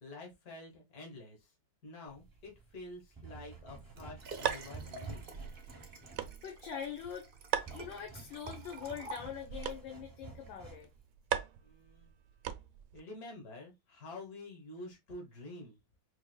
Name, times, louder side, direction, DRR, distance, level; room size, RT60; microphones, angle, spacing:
voice 1, 0.0-1.5 1.8-5.3 11.6-12.1 12.9-15.8, left 2 dB, 55° left, 2.0 m, -48 dB
sound 1, 2.1-11.0, right 4 dB, 20° right, 0.6 m, -51 dB
sound 2, 3.7-13.0, right 10 dB, 75° right, 1.1 m, -42 dB
Liquid, 3.8-9.8 10.5-10.6, right 3 dB, 55° right, 0.6 m, -48 dB
voice 2, 6.4-7.3 7.7-10.9, left 8 dB, 80° left, 1.6 m, -43 dB
5.7 x 2.7 x 2.2 m
omnidirectional pair, 2.0 m